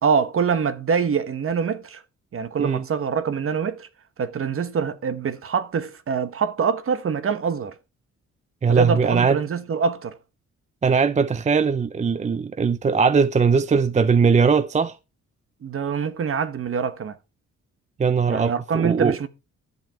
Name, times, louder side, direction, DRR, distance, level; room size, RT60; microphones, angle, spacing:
voice 1, 0.0-2.0 2.3-3.9 4.2-7.7 8.7-10.2 15.6-17.2 18.3-19.3, right 6 dB, 50° right, 1.2 m, -24 dB
voice 2, 8.6-9.4 10.8-15.0 18.0-19.2, right 5 dB, 25° right, 0.5 m, -20 dB
12.5 x 7.6 x 4.6 m
cardioid pair, 100°, 29 cm